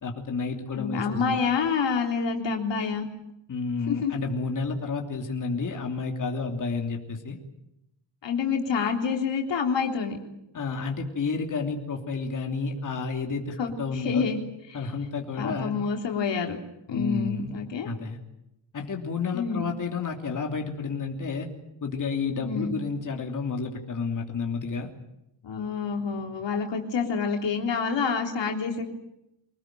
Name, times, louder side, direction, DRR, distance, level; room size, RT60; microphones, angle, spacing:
voice 1, 0.0-1.4 3.5-7.4 10.5-14.3 14.7-15.7 16.9-17.6 17.8-18.2 18.7-21.5 21.8-24.9, left 4 dB, 45° left, 2 dB, 3.0 m, -30 dB
voice 2, 0.7-3.1 3.9-4.1 8.2-10.2 13.6-14.4 15.4-16.6 16.9-17.9 19.3-19.7 22.4-22.8 25.4-28.8, left 5 dB, 75° left, 3 dB, 3.5 m, -27 dB
25.5 x 19.5 x 9.1 m, 0.86 s
wide cardioid pair, 140°, 44 cm